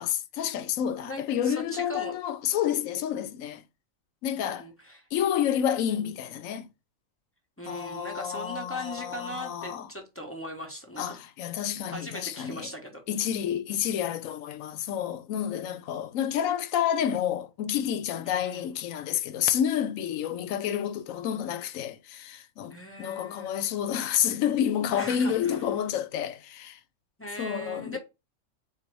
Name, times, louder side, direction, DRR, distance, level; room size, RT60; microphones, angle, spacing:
voice 1, 0.0-3.6 4.2-4.7 5.1-6.7 7.7-9.9 11.0-12.7 13.1-26.8 27.4-28.0, left 9 dB, 80° left, 1.0 m, -29 dB
voice 2, 1.0-2.2 4.3-5.0 7.6-11.2 11.9-13.0 18.2-18.7 22.7-23.6 24.9-25.6 27.2-28.0, equal, 15° left, 0.6 m, -39 dB
4.0 x 2.5 x 4.5 m
omnidirectional pair, 1.4 m